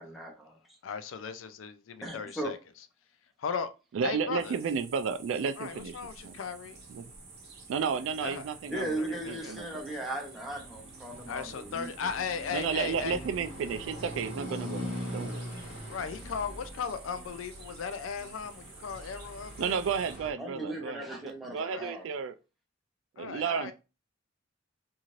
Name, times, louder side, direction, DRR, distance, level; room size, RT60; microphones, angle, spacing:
voice 1, 0.0-0.8 2.0-2.5 8.7-11.9 20.4-22.0, right 1 dB, ahead, 0.8 m, -37 dB
voice 2, 0.8-2.6 3.4-3.7 4.0-4.6 5.6-6.8 8.0-8.5 9.0-9.6 11.3-13.2 15.9-19.8 21.6-21.9 23.2-23.7, left 6 dB, 85° left, 0.4 m, -37 dB
voice 3, 3.9-5.9 6.2-6.3 6.9-7.1 7.7-9.0 9.3-9.7 12.5-15.4 19.6-22.4 23.2-23.7, right 6 dB, 75° right, 0.3 m, -32 dB
sound 1, 4.4-20.2, right 4 dB, 55° right, 0.8 m, -52 dB
sound 2, 5.9-20.3, equal, 70° left, 1.4 m, -44 dB
2.7 x 2.4 x 3.0 m
head